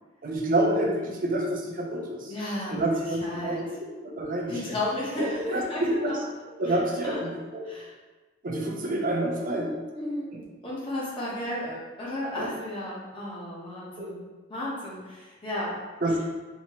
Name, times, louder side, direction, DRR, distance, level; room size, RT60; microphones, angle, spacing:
voice 1, 0.2-2.3 2.7-3.7 4.0-4.8 5.2-6.2 6.6-7.7 8.4-9.7 10.3-10.4 12.4-12.5 14.0-14.2 16.0-16.2, right 1 dB, 45° right, 0 dB, 0.6 m, -28 dB
voice 2, 2.3-3.6 4.5-6.3 6.7-6.8 7.0-7.2 7.6-7.9 9.5-10.3 10.6-14.2 14.5-15.8, left 1 dB, 25° left, -7 dB, 1.2 m, -34 dB
4.3 x 3.0 x 3.0 m, 1.3 s
head